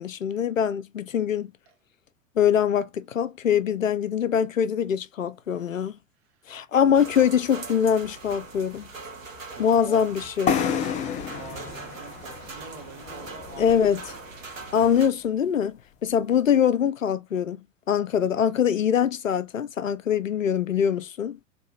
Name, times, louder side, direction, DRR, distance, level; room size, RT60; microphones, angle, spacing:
voice 1, 0.0-1.5 2.4-6.0 6.5-8.9 9.6-10.6 13.6-14.0 14.7-17.6 17.9-21.4, left 8 dB, 85° left, 0.5 m, -23 dB
voice 2, 6.2-6.5 9.5-10.3 11.3-14.0 18.2-18.4, right 5 dB, 50° right, 1.6 m, -46 dB
sound 1, 6.9-15.1, right 3 dB, 85° right, 1.6 m, -41 dB
sound 2, 10.5-14.1, left 7 dB, 20° left, 0.5 m, -30 dB
4.6 x 3.3 x 2.7 m
figure-of-eight pair, 90°, 38 cm